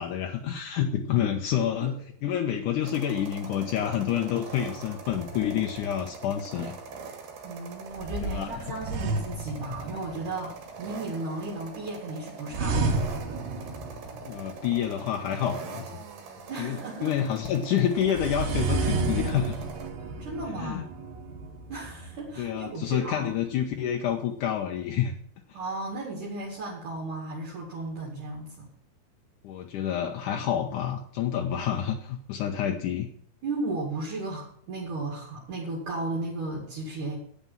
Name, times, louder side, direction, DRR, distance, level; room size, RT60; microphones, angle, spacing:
voice 1, 0.0-6.7 8.2-8.8 14.3-15.9 16.6-19.6 20.5-20.8 22.4-25.1 29.4-33.1, left 9 dB, 80° left, 3 dB, 1.8 m, -28 dB
sound 1, 2.8-19.9, right 4 dB, 70° right, 3.8 m, -43 dB
sound 2, 5.1-6.1 8.0-10.3 12.5-14.7 18.0-22.7, right 3 dB, 85° right, 3.9 m, -31 dB
voice 2, 7.4-12.9 16.5-17.3 20.2-20.8 21.7-23.3 25.5-28.7 33.4-37.2, right 2 dB, 55° right, -3 dB, 3.5 m, -35 dB
9.4 x 8.5 x 7.4 m, 0.63 s
omnidirectional pair, 4.8 m